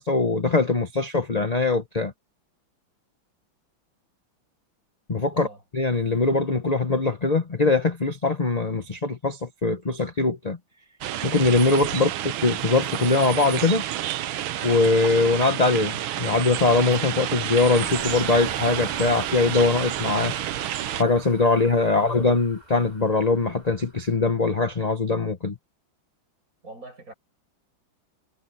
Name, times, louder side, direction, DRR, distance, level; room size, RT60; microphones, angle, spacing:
voice 1, 0.0-2.1 5.1-5.5 5.7-10.6 11.2-12.1 12.4-13.8 14.6-20.3 20.9-25.6, left 3 dB, 25° left, 1.0 m, -22 dB
voice 2, 5.3-5.6 11.9-12.1 21.9-22.1 26.6-27.1, right 2 dB, 40° right, 7.7 m, -43 dB
sound 1, 11.0-21.0, right 12 dB, 85° right, 1.6 m, -30 dB
sound 2, 17.7-24.8, right 1 dB, 20° right, 7.3 m, -43 dB
omnidirectional pair, 2.2 m